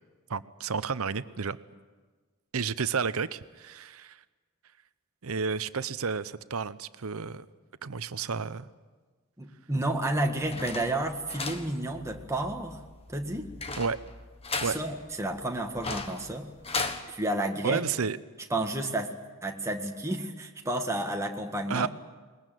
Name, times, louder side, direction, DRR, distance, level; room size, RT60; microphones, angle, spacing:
voice 1, 0.3-1.6 2.5-4.2 5.2-7.5 7.8-8.7 13.8-14.0 14.6-14.8 17.6-18.2 21.7-21.9, right 5 dB, 70° right, 14 dB, 0.8 m, -31 dB
voice 2, 9.4-12.8 13.1-13.5 14.6-16.5 17.1-17.8 18.5-19.2 19.4-21.9, right 1 dB, 15° right, 2 dB, 1.8 m, -31 dB
sound 1, 10.0-17.0, left 4 dB, 25° left, 1.4 m, -37 dB
21.5 x 20.5 x 9.2 m, 1.4 s
head